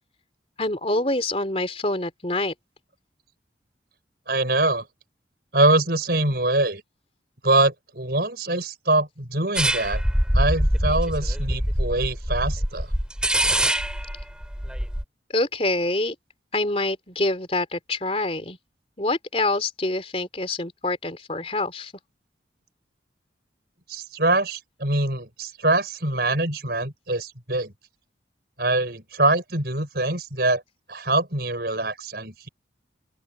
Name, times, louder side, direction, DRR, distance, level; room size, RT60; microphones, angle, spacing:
voice 1, 0.6-2.5 15.3-16.2 16.5-18.6 19.0-21.9, left 2 dB, 30° left, 3.5 m, -26 dB
voice 2, 4.3-4.9 5.5-6.8 7.4-10.0 10.3-12.9 23.9-27.7 28.6-30.6 30.9-32.5, right 2 dB, 55° right, 6.3 m, -24 dB
sound 1, 9.6-15.0, equal, 5° right, 3.1 m, -24 dB
open air
head